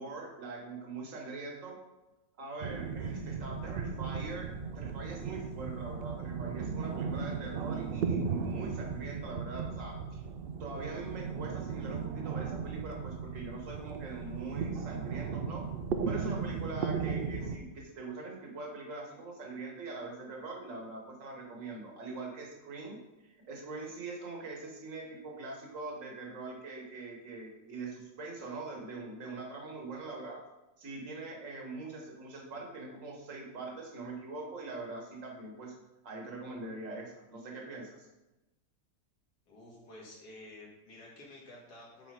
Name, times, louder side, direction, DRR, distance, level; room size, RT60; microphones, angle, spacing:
voice 1, 0.0-1.8 2.4-4.5 4.8-10.2 10.6-15.7 16.0-30.4 30.8-35.7 36.0-38.1, right 3 dB, 55° right, -1 dB, 1.9 m, -43 dB
sound 1, 2.6-17.6, right 6 dB, 75° right, 0.5 m, -36 dB
voice 2, 39.5-42.1, left 1 dB, 80° left, -5 dB, 2.6 m, -51 dB
8.3 x 4.5 x 5.0 m, 1.0 s
omnidirectional pair, 1.7 m